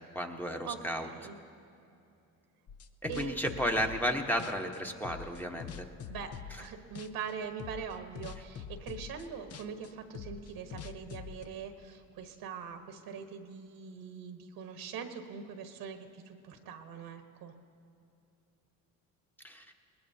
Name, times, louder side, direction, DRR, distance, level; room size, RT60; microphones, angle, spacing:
voice 1, 0.0-1.1 3.0-5.8 19.4-19.7, equal, 5° left, 3 dB, 1.1 m, -33 dB
voice 2, 0.7-1.4 3.1-3.4 6.1-17.5, right 6 dB, 70° right, 6 dB, 1.3 m, -42 dB
sound 1, 2.7-4.1 4.4-6.7 7.0-7.3 7.6-11.5, left 7 dB, 40° left, 0.6 m, -45 dB
21.0 x 20.0 x 2.8 m, 2.7 s
cardioid pair, 100°, 37 cm